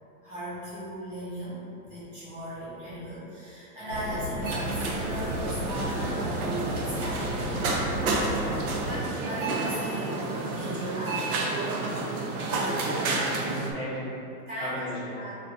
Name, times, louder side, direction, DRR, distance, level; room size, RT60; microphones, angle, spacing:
voice 1, 0.2-11.5 14.5-14.9 15.1-15.4, equal, 35° right, -10 dB, 1.1 m, -37 dB
sound 1, 3.9-9.0, equal, 35° left, 1.2 m, -33 dB
sound 2, 4.4-13.7, right 3 dB, 70° right, 0.6 m, -30 dB
voice 2, 12.5-14.1 14.6-15.2, equal, ahead, -24 dB, 0.8 m, -35 dB
2.5 x 2.4 x 3.6 m, 2.7 s
hypercardioid pair, 180°, 46 cm